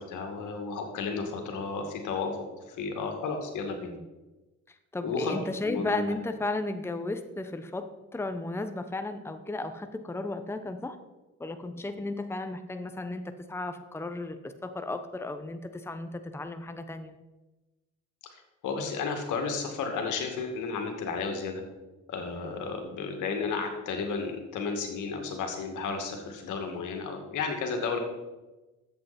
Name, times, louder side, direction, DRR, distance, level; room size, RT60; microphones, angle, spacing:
voice 1, 0.0-2.3 2.7-3.9 5.0-5.4 5.6-6.0 18.6-21.6 22.1-28.0, left 4 dB, 85° left, 4 dB, 2.2 m, -33 dB
voice 2, 4.9-11.0 11.4-17.1 22.4-22.5, left 2 dB, 10° left, 8 dB, 0.9 m, -34 dB
13.5 x 8.2 x 4.3 m, 1.1 s
cardioid pair, 90°, 30 cm